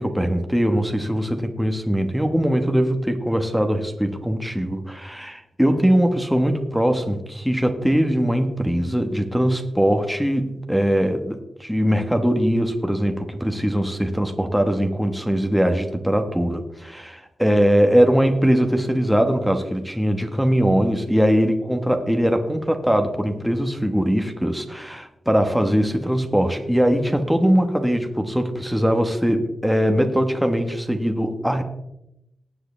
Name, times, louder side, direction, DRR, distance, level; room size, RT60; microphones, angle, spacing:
voice 1, 0.0-31.6, equal, ahead, 5 dB, 1.3 m, -21 dB
19.0 x 7.8 x 3.4 m, 0.85 s
cardioid pair, 90°, 0 cm